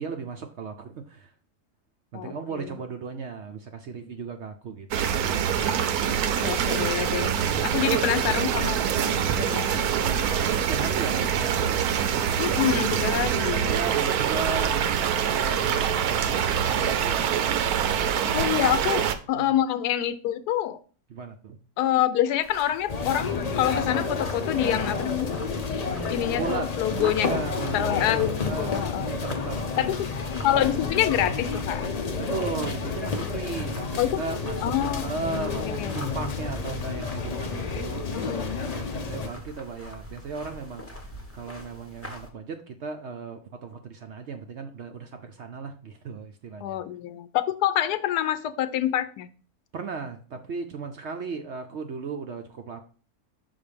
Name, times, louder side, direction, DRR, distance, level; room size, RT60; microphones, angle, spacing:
voice 1, 0.0-1.3 2.1-5.2 7.5-8.1 9.1-9.5 10.4-12.1 13.7-19.0 19.3-19.5 21.1-21.6 26.3-26.6 26.9-30.0 32.2-34.7 35.0-41.0 41.3-46.8 49.7-52.8, right 5 dB, 60° right, 6 dB, 0.7 m, -36 dB
sound 1, 4.9-19.2, right 8 dB, 75° right, 1.1 m, -25 dB
voice 2, 6.2-9.8 12.4-13.7 18.3-20.8 21.8-25.3 26.1-27.3 27.7-29.1 29.8-30.0 30.4-31.9 34.0-34.2 34.6-36.0 38.1-38.5 46.6-49.3, left 11 dB, 85° left, 12 dB, 1.2 m, -27 dB
sound 2, 22.4-42.3, left 1 dB, 10° left, 0.7 m, -45 dB
sound 3, 22.9-39.3, left 4 dB, 55° left, 0.4 m, -30 dB
5.8 x 4.0 x 5.0 m, 0.40 s
omnidirectional pair, 1.7 m